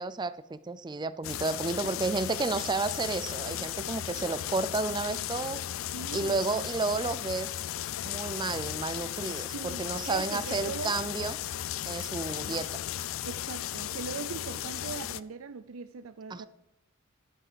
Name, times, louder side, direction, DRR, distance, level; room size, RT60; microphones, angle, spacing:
voice 1, 0.0-5.6 6.1-7.5 8.0-11.4 11.8-12.8 16.3-16.5, right 3 dB, 20° right, 15 dB, 0.4 m, -32 dB
sound 1, 1.2-15.2, left 12 dB, 65° left, 0.4 m, -36 dB
voice 2, 5.9-6.6 9.5-11.0 13.2-16.5, right 5 dB, 80° right, 12 dB, 0.5 m, -40 dB
11.0 x 6.1 x 6.8 m, 0.82 s
head